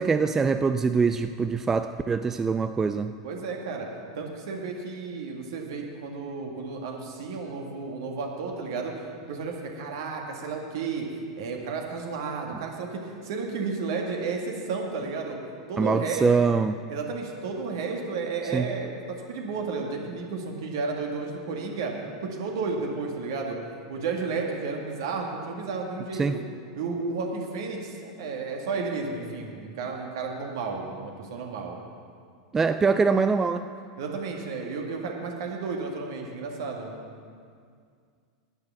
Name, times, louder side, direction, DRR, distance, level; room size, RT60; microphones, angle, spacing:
voice 1, 0.0-3.1 15.8-16.8 18.5-18.7 26.2-26.4 32.5-33.7, right 5 dB, 15° right, 10 dB, 0.4 m, -23 dB
voice 2, 3.2-3.9 4.2-11.1 11.4-15.4 15.7-16.3 16.9-18.9 19.3-21.9 22.2-23.6 23.9-26.4 26.7-31.8 34.0-36.9, right 4 dB, 60° right, 1 dB, 2.0 m, -32 dB
10.5 x 9.5 x 7.2 m, 2.2 s
figure-of-eight pair, 85°, 2 cm